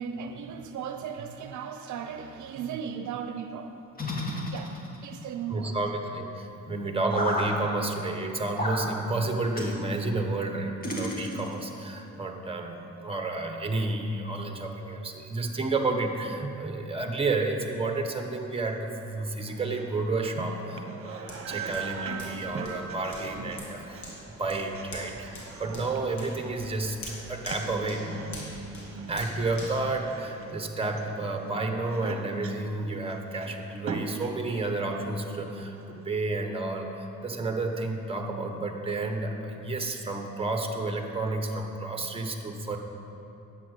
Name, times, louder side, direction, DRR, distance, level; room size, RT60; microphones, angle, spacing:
voice 1, 0.0-3.8 4.5-4.7 5.0-5.8, right 7 dB, 70° right, 7 dB, 0.7 m, -36 dB
sound 1, 4.0-5.2 7.1-7.5 8.6-8.8 9.5-9.8 10.8-11.7, left 1 dB, 30° left, 2.1 m, -31 dB
voice 2, 5.5-24.1 24.4-27.0 27.3-28.1 29.1-42.8, right 2 dB, 20° right, 4 dB, 1.3 m, -31 dB
sound 2, 18.7-36.2, right 4 dB, 45° right, 1.1 m, -41 dB
Hands, 21.3-30.8 31.3-31.4, left 1 dB, 70° left, 2.5 m, -46 dB
10.5 x 8.2 x 6.7 m, 2.9 s
cardioid pair, 90°, 30 cm